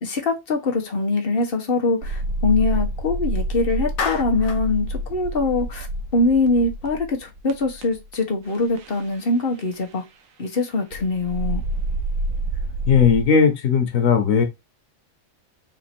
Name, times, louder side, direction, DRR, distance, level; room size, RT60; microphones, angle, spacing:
voice 1, 0.0-5.9 6.1-10.0 10.4-11.6, left 3 dB, 45° left, 1.3 m, -23 dB
sound 1, 2.0-8.2 8.6-9.2 9.7-9.8 10.9-13.2, right 1 dB, 85° right, 1.2 m, -28 dB
Clapping, 4.0-4.7, left 5 dB, 65° left, 1.1 m, -28 dB
voice 2, 12.9-14.4, left 6 dB, 90° left, 1.4 m, -17 dB
4.2 x 2.7 x 4.4 m
omnidirectional pair, 1.4 m